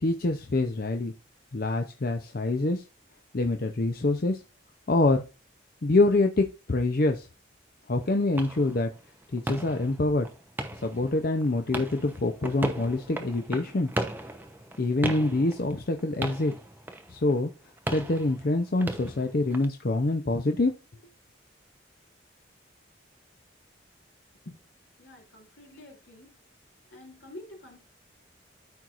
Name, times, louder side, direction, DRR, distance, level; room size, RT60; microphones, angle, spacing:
voice 1, 0.0-1.1 1.5-2.8 3.3-4.4 4.9-5.2 5.8-7.3 7.9-8.9 9.3-10.3 10.8-13.9 14.8-16.5 17.1-17.5 17.9-20.7, left 2 dB, 50° left, 0.6 m, -25 dB
sound 1, 8.0-19.7, right 1 dB, 10° right, 0.8 m, -37 dB
voice 2, 25.0-26.3 26.9-27.8, left 1 dB, 80° left, 2.9 m, -47 dB
13.0 x 4.5 x 2.5 m
head